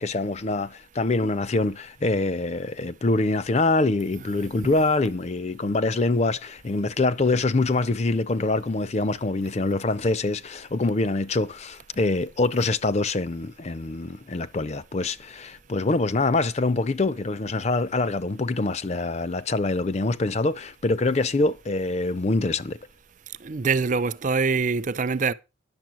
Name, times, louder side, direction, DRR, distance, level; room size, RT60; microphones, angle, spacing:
voice 1, 0.0-22.8, left 2 dB, 35° left, 0.5 m, -25 dB
voice 2, 23.4-25.3, right 4 dB, 40° right, 0.5 m, -24 dB
10.5 x 6.9 x 6.0 m
head